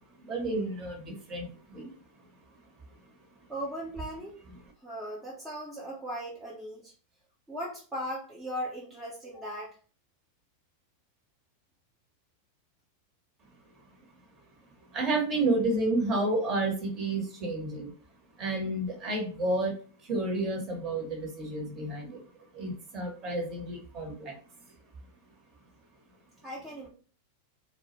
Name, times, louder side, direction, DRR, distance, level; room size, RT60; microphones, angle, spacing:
voice 1, 0.2-1.9 14.9-17.9 18.4-19.7 20.0-22.2 22.5-24.3, right 2 dB, 30° right, 1 dB, 0.9 m, -30 dB
voice 2, 3.5-4.3 4.8-6.9 7.5-9.8 26.4-26.9, equal, 10° right, -5 dB, 0.6 m, -38 dB
2.0 x 2.0 x 3.1 m, 0.39 s
figure-of-eight pair, 90°, 0 cm